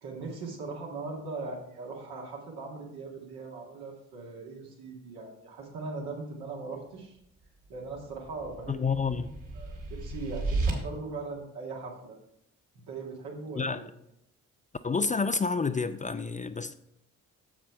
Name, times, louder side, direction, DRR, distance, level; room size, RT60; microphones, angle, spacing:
voice 1, 0.0-7.2 7.7-9.3 9.6-12.2 12.9-13.8, right 3 dB, 70° right, 2.0 m, -40 dB
sound 1, 7.9-10.7, right 3 dB, 55° right, 2.2 m, -33 dB
voice 2, 8.7-9.3 13.6-13.8 14.8-16.7, left 4 dB, 20° left, 0.5 m, -29 dB
7.3 x 7.1 x 4.5 m
hypercardioid pair, 40°, 37 cm